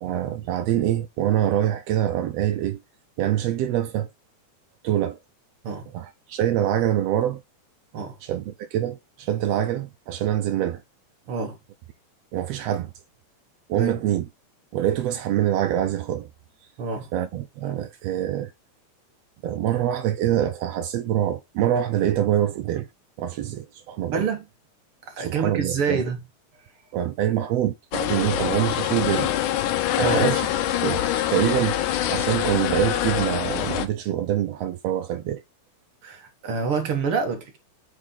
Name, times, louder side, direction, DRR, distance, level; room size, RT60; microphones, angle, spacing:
voice 1, 0.0-2.8 3.2-4.1 4.8-5.2 5.9-7.4 8.2-10.8 12.3-12.9 13.7-14.3 14.7-16.3 17.1-18.5 19.4-22.9 23.2-24.3 25.2-26.0 26.9-29.3 30.0-30.5 30.8-31.0 31.3-35.4, right 11 dB, 85° right, 1.4 m, -25 dB
voice 2, 16.8-17.1 24.1-24.5 25.1-26.2 30.0-30.3 36.0-37.6, right 5 dB, 55° right, 1.9 m, -27 dB
sound 1, 27.9-33.9, left 12 dB, 90° left, 2.3 m, -24 dB
8.3 x 4.1 x 3.9 m
omnidirectional pair, 3.5 m